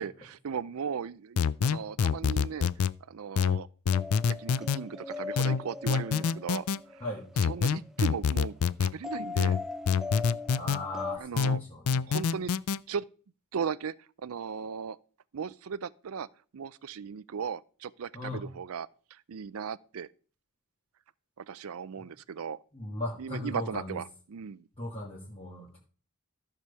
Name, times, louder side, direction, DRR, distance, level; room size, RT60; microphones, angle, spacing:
voice 1, 0.0-2.7 3.1-3.7 4.3-7.0 7.4-8.5 8.8-9.6 11.2-11.6 12.1-12.5 12.9-13.1 13.5-15.0 15.3-16.3 16.5-20.1 21.4-22.6 23.2-24.7, right 6 dB, 70° right, 0.5 m, -37 dB
sound 1, 1.4-2.9 3.4-4.8 5.4-6.8 7.4-8.9 9.4-10.8 11.4-12.8, left 6 dB, 75° left, 0.4 m, -26 dB
sound 2, 3.9-7.9 9.0-11.2, left 3 dB, ahead, 0.6 m, -40 dB
voice 2, 10.5-12.2 18.1-18.5 22.0-22.1 22.7-24.0 24.8-25.8, left 2 dB, 25° left, 2.4 m, -38 dB
14.0 x 4.9 x 6.8 m
head